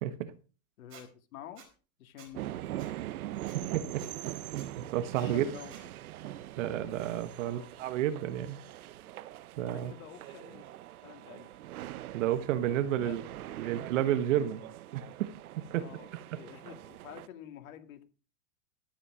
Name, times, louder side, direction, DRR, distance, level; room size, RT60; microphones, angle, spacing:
voice 1, 0.0-0.3 3.7-4.0 4.7-5.4 6.6-8.6 9.6-9.9 12.1-13.2 13.5-14.6 14.9-15.3 15.7-15.8, right 11 dB, 60° right, 1.3 m, -31 dB
voice 2, 0.8-1.6 2.0-2.4 5.2-5.7 7.4-7.7 9.6-10.6 11.0-11.5 13.0-13.2 15.7-18.0, left 10 dB, 75° left, 2.3 m, -48 dB
Squeak, 0.9-1.0 1.6-1.7 2.2-2.3 2.8-2.9 3.4-3.6 4.0-4.1 4.5-4.7 5.1-5.2 5.7-5.8, right 7 dB, 30° right, 4.3 m, -53 dB
sound 1, 2.3-17.3, right 14 dB, 90° right, 0.9 m, -42 dB
13.0 x 8.8 x 4.9 m
supercardioid pair, 160°, 42 cm